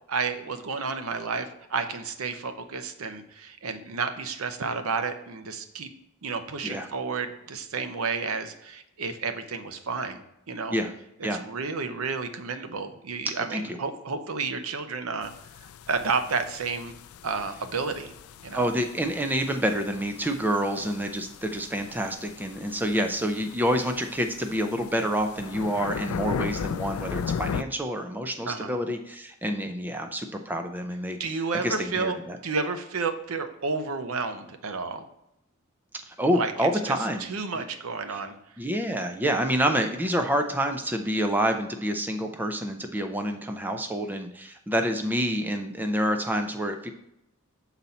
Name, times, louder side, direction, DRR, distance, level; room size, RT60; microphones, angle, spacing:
voice 1, 0.1-5.9 6.2-10.8 11.3-15.3 15.9-17.0 17.2-18.1 18.4-18.7 28.5-28.7 31.2-32.2 32.4-35.0 36.3-38.3, right 4 dB, 75° right, 8 dB, 0.7 m, -31 dB
sound 1, 15.2-27.6, left 7 dB, 70° left, 0.3 m, -37 dB
voice 2, 18.5-32.4 36.1-37.6 38.1-38.2 38.6-46.9, equal, 10° right, 5 dB, 0.4 m, -28 dB
6.9 x 4.1 x 4.2 m, 0.82 s
head